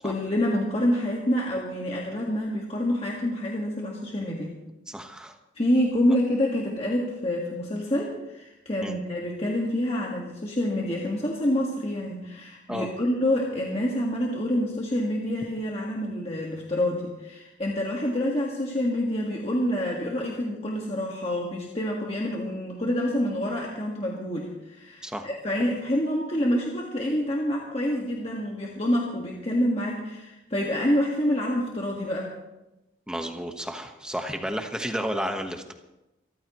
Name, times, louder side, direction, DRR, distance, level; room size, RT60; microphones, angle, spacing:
voice 1, 0.0-4.5 5.5-32.3, left 1 dB, 30° left, -2 dB, 1.7 m, -27 dB
voice 2, 4.9-5.4 8.8-8.9 12.7-12.9 25.0-25.3 33.1-35.7, equal, 5° right, 5 dB, 1.2 m, -32 dB
26.0 x 14.0 x 3.1 m, 0.97 s
head